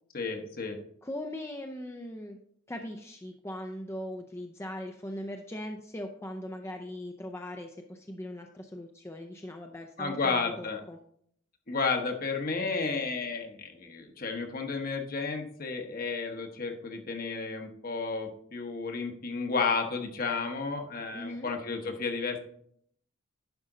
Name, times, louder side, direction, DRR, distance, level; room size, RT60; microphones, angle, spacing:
voice 1, 0.1-0.8 10.0-10.8 11.7-22.4, left 4 dB, 45° left, 5 dB, 1.1 m, -32 dB
voice 2, 1.0-2.4 2.7-11.0 21.1-21.5, left 1 dB, 15° left, 4 dB, 0.5 m, -40 dB
10.5 x 5.1 x 3.8 m, 0.65 s
head